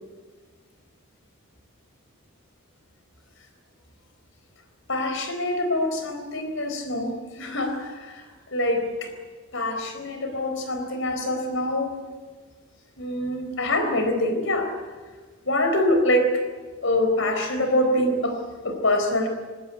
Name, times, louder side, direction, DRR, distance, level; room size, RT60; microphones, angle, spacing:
voice 1, 4.9-8.2 8.5-9.1 9.5-12.0 13.0-14.8 15.5-16.4 16.8-19.3, left 1 dB, 65° left, 6 dB, 4.1 m, -25 dB
20.0 x 17.0 x 9.8 m, 1.4 s
head